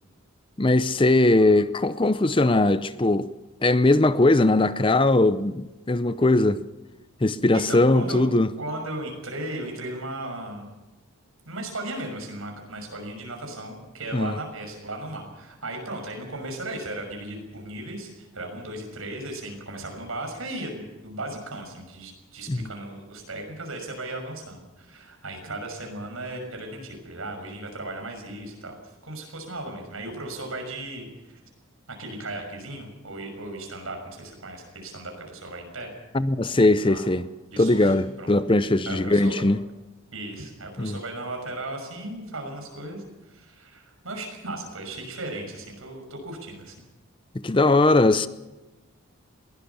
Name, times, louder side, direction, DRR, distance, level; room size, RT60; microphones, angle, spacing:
voice 1, 0.6-3.3 3.6-6.6 7.2-8.5 14.1-14.3 22.5-22.7 36.1-37.2 37.6-39.6 40.8-41.0 47.3-48.3, left 2 dB, 25° left, 0.6 m, -20 dB
voice 2, 7.5-8.2 8.6-10.7 11.4-28.8 29.0-31.4 31.9-35.9 36.6-37.1 37.5-38.3 38.9-39.3 40.1-46.7, right 1 dB, 75° right, 6.2 m, -36 dB
22.0 x 17.0 x 7.1 m
head